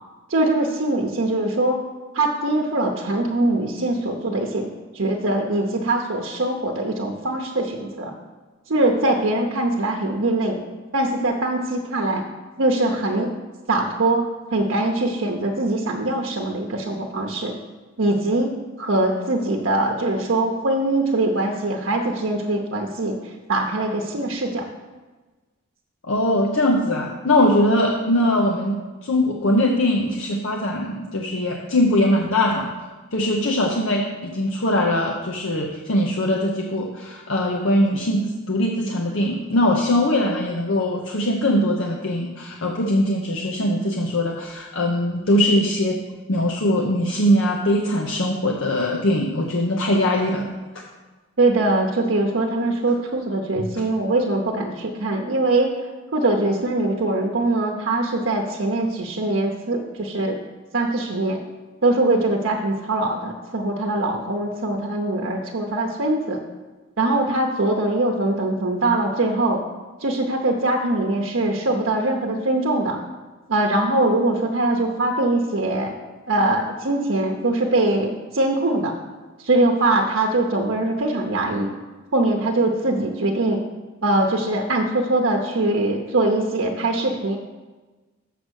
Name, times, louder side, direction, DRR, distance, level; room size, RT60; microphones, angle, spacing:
voice 1, 0.3-1.8 2.1-4.7 4.9-8.1 8.7-10.6 10.9-12.3 12.6-13.3 13.7-17.6 18.0-18.5 18.8-23.2 23.5-24.7 51.4-55.7 56.1-60.4 60.7-61.4 61.8-66.4 67.0-69.6 70.0-73.0 73.5-75.9 76.3-79.0 79.4-81.7 82.1-83.6 84.0-87.4, right 2 dB, 70° right, 0 dB, 0.8 m, -22 dB
voice 2, 26.0-28.8 29.0-32.7 33.1-46.0 46.3-50.5, left 1 dB, 75° left, 0 dB, 0.8 m, -21 dB
7.0 x 6.4 x 6.3 m, 1.3 s
head